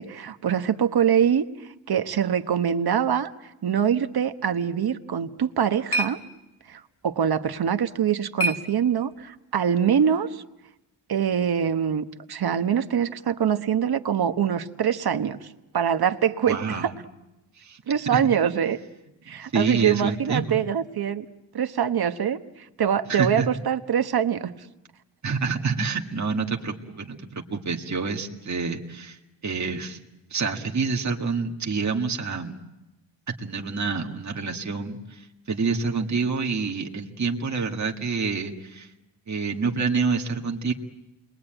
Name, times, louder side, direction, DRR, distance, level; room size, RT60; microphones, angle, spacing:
voice 1, 0.0-3.3 3.6-6.2 6.7-10.4 11.1-15.5 15.7-16.9 17.9-18.8 19.3-21.3 21.5-24.5, right 8 dB, 60° right, 9 dB, 1.2 m, -24 dB
sound 1, 5.2-9.4, right 1 dB, 30° left, 2.3 m, -33 dB
voice 2, 16.5-16.9 17.6-17.8 18.1-18.2 19.5-20.6 23.1-23.5 25.2-29.2 29.4-30.0 30.3-32.5 33.4-38.9 39.3-40.7, right 4 dB, 40° right, 2 dB, 2.0 m, -27 dB
29.0 x 22.0 x 9.0 m, 0.96 s
wide cardioid pair, 160°, 43 cm